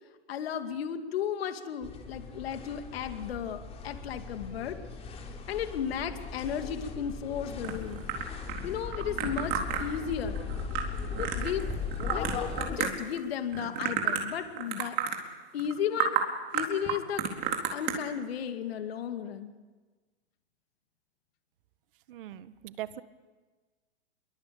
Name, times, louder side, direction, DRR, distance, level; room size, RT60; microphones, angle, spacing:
voice 1, 0.3-4.8 5.5-8.0 8.6-10.4 11.2-11.7 12.1-15.0 15.5-16.2 16.5-17.3 17.7-19.5, left 8 dB, 60° left, 7 dB, 2.5 m, -34 dB
sound 1, 1.8-12.8, left 5 dB, 20° left, 3.7 m, -38 dB
sound 2, 7.6-13.2 13.5-14.3 14.6-15.2 15.6-15.7 16.0-16.2 16.5-17.9, right 10 dB, 35° right, 4.2 m, -31 dB
voice 2, 22.1-23.0, right 13 dB, 50° right, 13 dB, 1.6 m, -40 dB
27.5 x 23.5 x 8.7 m, 1.3 s
hypercardioid pair, 145°, 33 cm